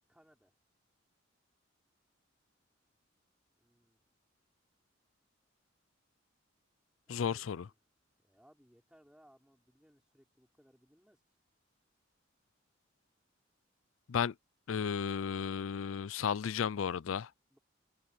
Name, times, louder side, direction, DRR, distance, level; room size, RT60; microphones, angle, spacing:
voice 1, 0.1-0.5 3.5-4.0 7.1-7.7 8.2-11.2 17.5-17.6, equal, 5° right, 5.6 m, -65 dB
voice 2, 7.1-7.7 14.1-14.3 14.7-17.3, left 7 dB, 85° left, 0.4 m, -33 dB
open air
head